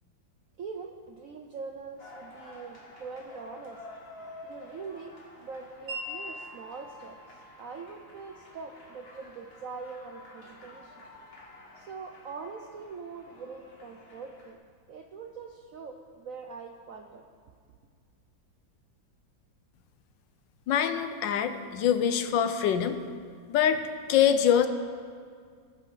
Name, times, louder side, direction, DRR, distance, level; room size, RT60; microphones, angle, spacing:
voice 1, 0.6-3.8 4.4-7.2 7.6-11.1 11.8-14.6 14.9-17.3, right 4 dB, 70° right, 3 dB, 0.8 m, -43 dB
sound 1, 2.0-14.5, left 2 dB, 30° left, 1.6 m, -50 dB
Wind chime, 5.9-12.0, equal, 40° right, 3.0 m, -46 dB
voice 2, 20.7-23.0 23.5-23.8 24.1-24.7, left 9 dB, 75° left, 9 dB, 1.3 m, -24 dB
20.0 x 8.1 x 4.0 m, 2.1 s
omnidirectional pair, 2.1 m